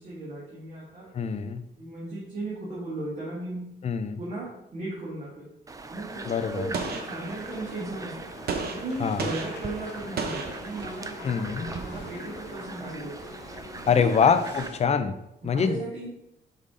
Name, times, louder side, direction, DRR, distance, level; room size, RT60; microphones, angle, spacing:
voice 1, 0.0-1.3 1.8-3.7 4.2-5.5 5.8-8.1 8.6-13.3 13.8-14.1 15.4-16.1, right 2 dB, 45° right, -7 dB, 2.0 m, -36 dB
voice 2, 1.1-1.6 3.8-4.2 6.3-6.7 9.0-9.3 11.2-11.7 13.9-15.1 15.4-15.8, left 6 dB, 35° left, 10 dB, 0.5 m, -24 dB
sound 1, 5.7-14.7, right 3 dB, 20° right, 0.4 m, -41 dB
sound 2, 6.1-14.8, left 4 dB, 75° left, 1.0 m, -45 dB
Gunshot gunfire, 6.7-7.8 8.5-11.3, right 4 dB, 60° right, 0.8 m, -35 dB
5.6 x 5.1 x 3.8 m, 0.84 s
cardioid pair, 145°, 18 cm